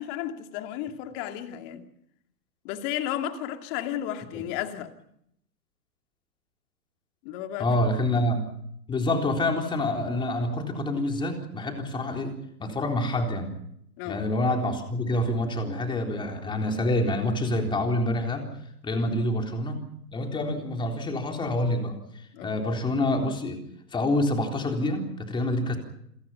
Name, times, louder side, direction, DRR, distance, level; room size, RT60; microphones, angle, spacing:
voice 1, 0.0-1.9 2.6-4.9 7.2-7.7 14.0-14.2 19.0-19.1 22.3-22.7, left 11 dB, 30° left, 2.5 m, -33 dB
voice 2, 7.6-8.4 8.9-12.3 12.6-13.5 14.1-18.5 18.8-19.8 20.1-21.9 22.4-23.6 23.9-25.8, left 1 dB, 10° left, 3.8 m, -27 dB
27.5 x 22.5 x 5.7 m
hypercardioid pair, 135°, 48 cm